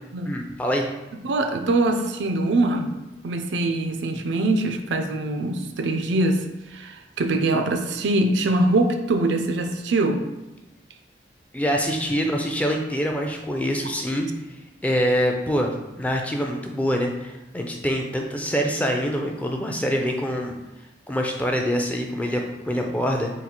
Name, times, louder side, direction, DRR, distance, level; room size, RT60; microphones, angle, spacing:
voice 1, 0.3-0.9 11.5-14.3 14.8-20.6 21.1-23.3, equal, 10° left, 2 dB, 0.4 m, -25 dB
voice 2, 1.2-2.9 3.2-6.4 6.7-10.2, right 2 dB, 85° right, 6 dB, 0.4 m, -23 dB
3.9 x 2.3 x 4.3 m, 1.0 s
head